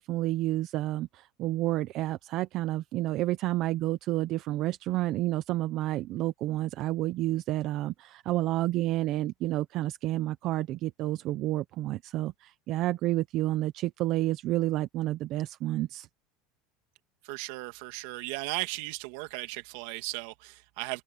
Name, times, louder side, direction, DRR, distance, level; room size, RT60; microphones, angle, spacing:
voice 1, 0.0-16.1, right 16 dB, 45° right, 0.8 m, -30 dB
voice 2, 17.2-21.0, right 21 dB, 70° right, 2.3 m, -36 dB
supercardioid pair, 145°, 0 cm